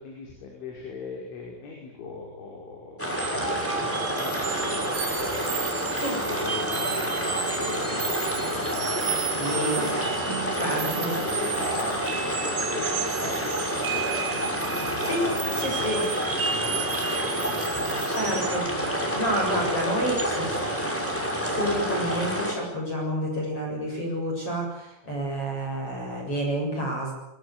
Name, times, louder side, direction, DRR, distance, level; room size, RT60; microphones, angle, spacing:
voice 1, 0.0-9.9 10.3-16.1 16.5-17.0 17.3-18.0 19.0-19.2 19.5-19.6, left 4 dB, 70° left, 0 dB, 7.5 m, -39 dB
sound 1, 3.0-22.5, equal, 5° left, 5.7 m, -29 dB
sound 2, 3.2-18.6, right 7 dB, 85° right, 1.3 m, -33 dB
voice 2, 9.4-9.9 10.5-11.2 15.0-15.2 15.5-16.0 18.1-20.6 21.4-27.1, equal, 30° left, 0 dB, 8.1 m, -29 dB
23.0 x 22.5 x 9.8 m, 0.81 s
omnidirectional pair, 5.6 m